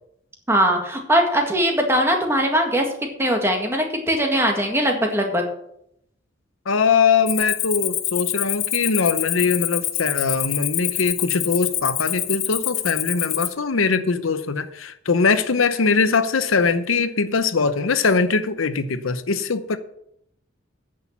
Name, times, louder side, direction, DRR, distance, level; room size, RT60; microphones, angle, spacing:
voice 1, 0.5-2.9 3.2-5.4, equal, 10° right, 1.8 m, -20 dB
voice 2, 6.7-19.8, left 4 dB, 90° left, 0.8 m, -21 dB
Cricket, 7.3-13.5, left 13 dB, 50° left, 0.8 m, -26 dB
9.8 x 6.5 x 7.2 m
head